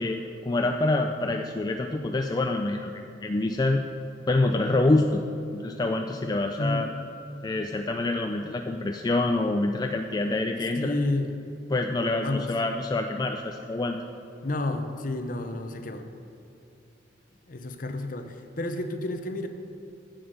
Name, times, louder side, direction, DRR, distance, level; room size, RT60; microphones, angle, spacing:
voice 1, 0.0-3.8 4.3-5.2 5.5-6.9 7.4-10.9 11.7-14.0, left 2 dB, 20° left, 4 dB, 0.3 m, -26 dB
voice 2, 6.6-6.9 10.7-11.3 12.2-12.5 14.4-16.0 17.5-19.5, left 2 dB, 45° left, 7 dB, 0.8 m, -30 dB
7.9 x 7.6 x 6.6 m, 2.8 s
head